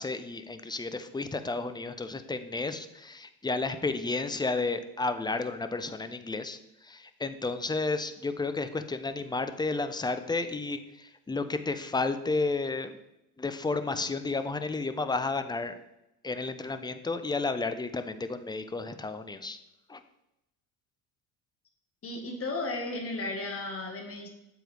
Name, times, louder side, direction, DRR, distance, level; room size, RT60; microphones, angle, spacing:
voice 1, 0.0-12.9 13.4-15.8 16.2-19.6 19.9-20.0, left 3 dB, 10° left, 10 dB, 0.5 m, -32 dB
voice 2, 22.0-24.3, left 2 dB, 30° left, 1 dB, 1.6 m, -34 dB
7.7 x 4.9 x 3.4 m, 0.87 s
hypercardioid pair, 70°, 42 cm